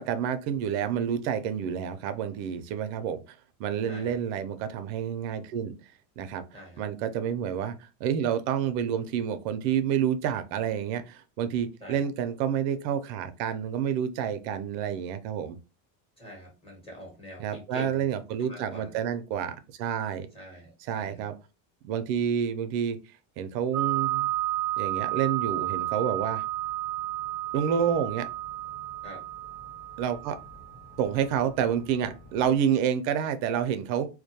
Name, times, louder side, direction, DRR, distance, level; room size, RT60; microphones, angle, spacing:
voice 1, 0.0-5.7 6.2-6.4 6.8-15.6 17.4-20.3 20.9-21.3 21.8-23.0 23.4-24.3 24.8-26.4 27.5-28.3 30.0-30.4 31.0-34.1, right 8 dB, 85° right, 0.6 m, -29 dB
voice 2, 3.8-4.2 6.5-6.8 11.8-12.1 16.2-18.0 18.4-18.9 20.3-21.2 29.0-29.2, left 1 dB, 10° left, 0.9 m, -45 dB
sound 1, 23.7-32.6, right 15 dB, 20° right, 0.4 m, -32 dB
2.2 x 2.2 x 2.7 m
cardioid pair, 160°, 50 cm